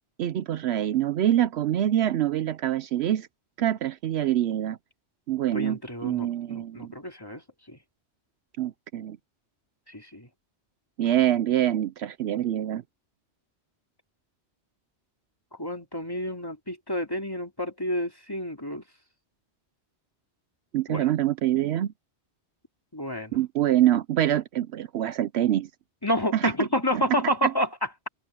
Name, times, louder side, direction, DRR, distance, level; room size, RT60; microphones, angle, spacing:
voice 1, 0.2-3.3 3.6-4.8 5.3-6.9 8.6-9.2 11.0-12.8 20.7-21.9 23.3-25.7 26.3-26.5 26.9-27.0 27.4-27.5, right 12 dB, 70° right, 0.8 m, -25 dB
voice 2, 5.5-7.4 7.7-7.8 9.9-10.3 15.6-18.8 20.9-21.0 22.9-23.3 26.0-27.7, equal, 20° left, 2.7 m, -29 dB
omnidirectional pair, 1.2 m